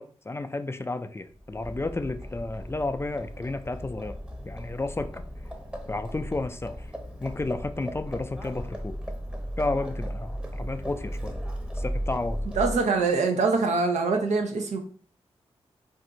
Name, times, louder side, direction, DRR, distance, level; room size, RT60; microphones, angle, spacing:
voice 1, 0.0-4.2 4.5-5.2 5.9-6.9 7.2-9.0 9.6-11.3 11.8-12.4, left 2 dB, 20° left, 9 dB, 0.3 m, -32 dB
Livestock farm animals working animals, 1.4-13.0, equal, 10° right, 0.7 m, -36 dB
voice 2, 12.6-14.8, right 4 dB, 85° right, 4 dB, 0.6 m, -24 dB
2.6 x 2.3 x 3.8 m, 0.43 s
cardioid pair, 50°, 12 cm